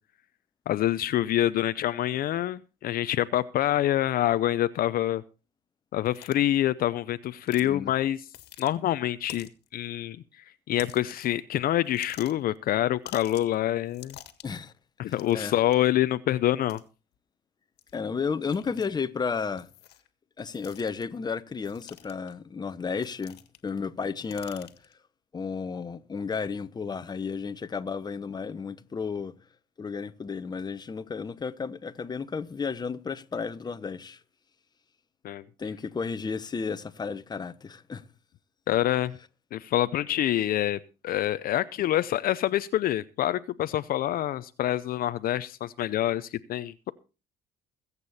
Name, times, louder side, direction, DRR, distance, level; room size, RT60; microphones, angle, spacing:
voice 1, 0.7-5.2 5.9-8.2 8.6-10.2 10.7-14.2 15.0-16.8 35.2-35.4 38.7-39.2 39.5-46.7, left 13 dB, 60° left, 0.6 m, -26 dB
sound 1, 6.1-6.4 7.5-7.7 8.3-8.7 9.3-9.7 10.8-11.4 11.9-12.6 13.1-13.6 13.9-14.6 15.1-15.8 16.7-16.8 17.8-18.0 18.5-18.9 19.6-20.1 20.5-21.0 21.7-22.3 23.0-23.7 24.0-24.9, left 13 dB, 80° left, 1.7 m, -47 dB
voice 2, 7.6-7.9 14.4-14.7 15.3-15.5 17.9-19.7 20.4-23.4 23.6-24.7 25.3-29.3 29.8-34.2 35.6-38.0, left 5 dB, 25° left, 0.9 m, -33 dB
22.0 x 8.3 x 4.1 m
cardioid pair, 110°, 17 cm